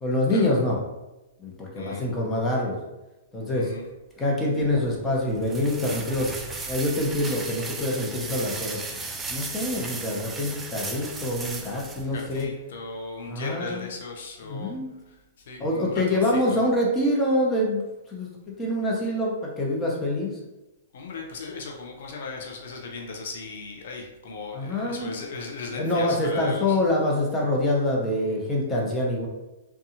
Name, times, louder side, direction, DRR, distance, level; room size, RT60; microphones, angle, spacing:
voice 1, 0.0-0.8 1.4-2.8 3.3-3.7 4.2-6.3 6.7-8.8 9.3-12.5 13.3-13.9 14.4-14.9 15.6-17.8 18.1-18.3 18.6-20.3 24.5-25.1 25.7-29.3, left 1 dB, 15° left, -3 dB, 0.8 m, -25 dB
voice 2, 3.5-3.8 12.0-14.8 15.1-16.6 20.9-26.8, left 4 dB, 65° left, 0 dB, 0.5 m, -37 dB
sound 1, 4.6-12.5, right 3 dB, 15° right, 0.3 m, -36 dB
2.6 x 2.2 x 2.8 m, 1.0 s
hypercardioid pair, 120°, 0 cm